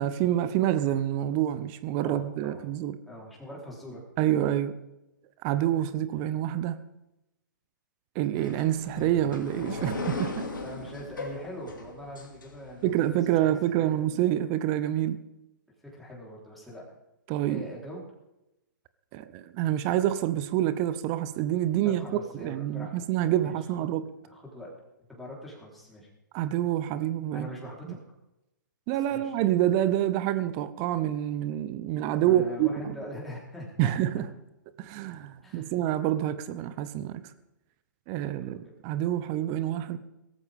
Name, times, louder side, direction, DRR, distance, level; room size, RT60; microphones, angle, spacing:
voice 1, 0.0-3.0 4.2-4.8 5.4-6.8 8.1-10.5 12.8-15.2 17.3-17.7 19.1-24.1 26.3-27.5 27.9-28.0 28.9-32.9 33.8-34.3 34.8-37.2 38.1-40.0, right 12 dB, 30° right, 14 dB, 0.8 m, -27 dB
voice 2, 2.0-2.6 3.1-4.0 10.6-14.0 15.8-16.8 17.5-18.0 21.8-22.9 23.4-23.5 24.2-24.7 25.1-26.1 27.3-28.0 28.9-29.3 32.2-33.9 35.4-35.7 38.3-38.7, left 1 dB, ahead, -5 dB, 4.0 m, -42 dB
sound 1, 8.4-13.0, left 3 dB, 75° left, 2.6 m, -37 dB
17.5 x 14.5 x 3.7 m, 0.91 s
figure-of-eight pair, 120°, 11 cm